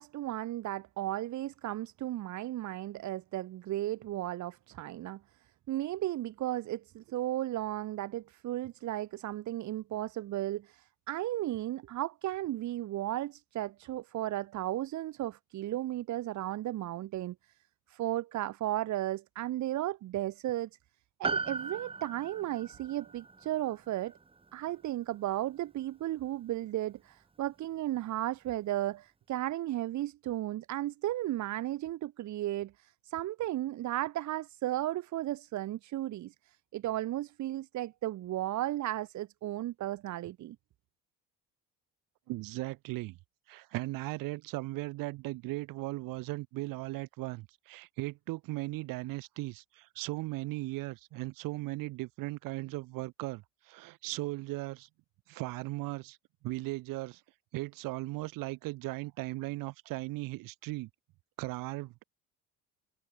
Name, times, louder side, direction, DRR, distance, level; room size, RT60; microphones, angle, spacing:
voice 1, 0.0-5.2 5.7-17.3 17.9-20.7 21.2-24.1 24.5-40.6, right 14 dB, 55° right, 3.0 m, -35 dB
Piano, 21.2-25.8 26.1-26.2, right 4 dB, 15° right, 3.7 m, -39 dB
voice 2, 42.3-43.2 43.5-54.9 55.3-56.2 56.4-57.2 57.5-60.9 61.4-62.0, right 20 dB, 75° right, 4.2 m, -37 dB
cardioid pair, 135°, 34 cm